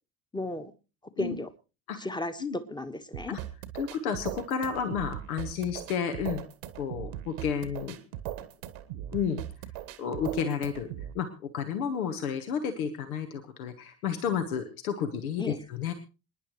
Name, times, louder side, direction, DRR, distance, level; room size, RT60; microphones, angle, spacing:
voice 1, 0.3-0.7 1.2-1.5 2.0-3.4 15.4-15.6, left 2 dB, 10° left, 9 dB, 1.3 m, -34 dB
sound 1, 3.1-11.1, right 12 dB, 60° right, 1.3 m, -39 dB
voice 2, 3.8-6.4 6.8-8.0 9.1-9.4 10.0-15.9, left 7 dB, 70° left, 7 dB, 1.3 m, -31 dB
27.0 x 10.5 x 3.1 m, 0.31 s
figure-of-eight pair, 60°, 45 cm